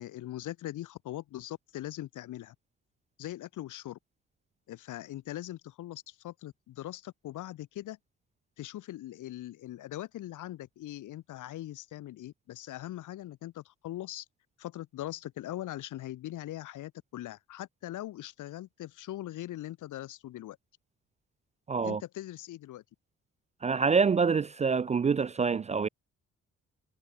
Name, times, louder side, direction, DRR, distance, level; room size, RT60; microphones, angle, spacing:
voice 1, 0.0-2.5 3.2-4.0 4.7-8.0 8.6-14.2 14.6-20.6 21.8-22.8, left 14 dB, 80° left, 2.9 m, -41 dB
voice 2, 21.7-22.0 23.6-25.9, right 5 dB, 25° right, 0.3 m, -26 dB
cardioid pair, 90°, 30 cm